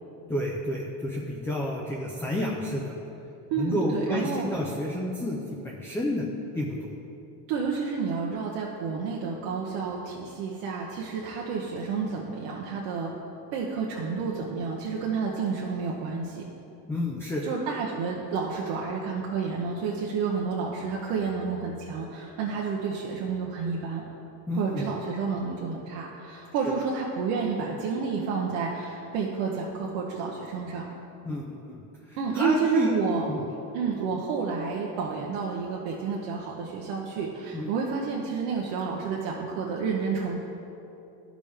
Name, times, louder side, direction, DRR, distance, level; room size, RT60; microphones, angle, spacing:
voice 1, 0.3-3.1 3.6-5.4 5.6-6.3 6.5-6.9 16.9-17.4 24.5-24.9 26.6-26.7 31.2-31.8 32.1-32.9 33.3-33.4 37.5-37.7, left 1 dB, 5° left, -2 dB, 0.4 m, -30 dB
voice 2, 3.5-4.5 7.5-13.1 13.5-16.4 17.4-24.0 24.5-30.9 32.2-33.3 33.7-40.4, right 5 dB, 80° right, -2 dB, 1.0 m, -30 dB
12.0 x 5.1 x 3.4 m, 2.9 s
cardioid pair, 135°, 46 cm